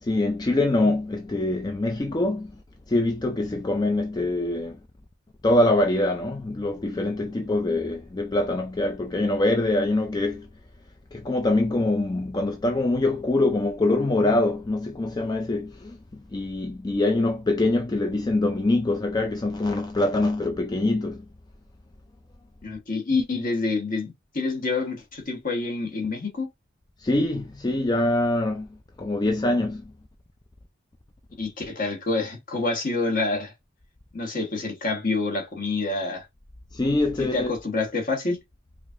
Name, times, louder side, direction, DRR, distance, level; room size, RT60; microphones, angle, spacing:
voice 1, 0.0-2.5 2.9-4.8 5.4-10.5 11.1-21.2 27.0-28.7 29.0-29.9 36.7-37.5, left 2 dB, 20° left, 0.4 m, -24 dB
voice 2, 22.6-26.5 31.4-33.5 34.1-36.2 37.2-38.4, left 3 dB, 45° left, 1.2 m, -27 dB
4.9 x 2.7 x 2.5 m
head